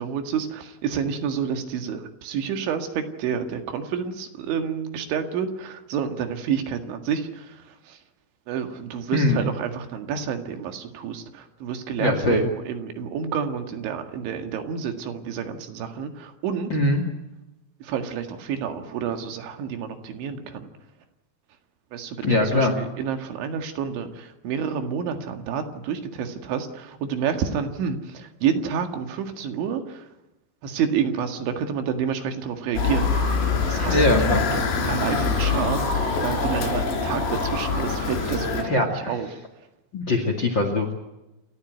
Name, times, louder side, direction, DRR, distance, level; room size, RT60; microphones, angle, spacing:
voice 1, 0.0-8.0 8.5-16.7 17.8-20.7 21.9-30.1 30.6-33.3 33.6-35.8 36.2-39.3, right 7 dB, 80° right, 6 dB, 4.3 m, -29 dB
voice 2, 9.1-9.4 12.0-12.4 16.7-17.0 22.2-22.7 33.9-34.4 38.6-38.9 39.9-40.9, left 2 dB, 35° left, 6 dB, 2.0 m, -21 dB
Motor vehicle (road) / Siren, 32.8-38.6, left 4 dB, 70° left, 6.2 m, -24 dB
28.5 x 13.5 x 9.5 m, 0.97 s
omnidirectional pair, 5.3 m